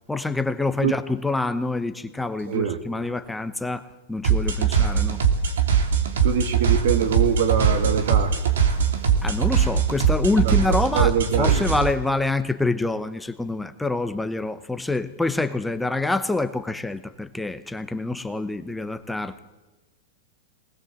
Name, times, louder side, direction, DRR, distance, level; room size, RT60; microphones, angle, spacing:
voice 1, 0.1-5.2 9.2-19.4, left 2 dB, 5° left, 0.8 m, -26 dB
voice 2, 2.5-2.8 6.2-8.3 10.4-10.5 10.9-11.6, right 8 dB, 70° right, 2.5 m, -23 dB
sound 1, 4.2-11.9, right 7 dB, 85° right, 2.9 m, -21 dB
20.5 x 19.5 x 7.7 m
hypercardioid pair, 140°, 0 cm